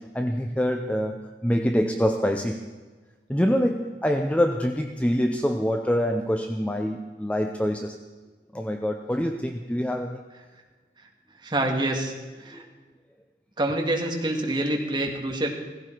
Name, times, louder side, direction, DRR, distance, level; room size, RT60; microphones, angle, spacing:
voice 1, 0.0-2.7 3.3-8.0 8.5-10.2 12.5-12.7, equal, 10° left, 4 dB, 0.6 m, -25 dB
voice 2, 11.4-12.1 12.4-12.6 13.6-15.5, right 1 dB, 25° right, 1 dB, 1.8 m, -26 dB
16.5 x 16.0 x 4.6 m, 1.3 s
head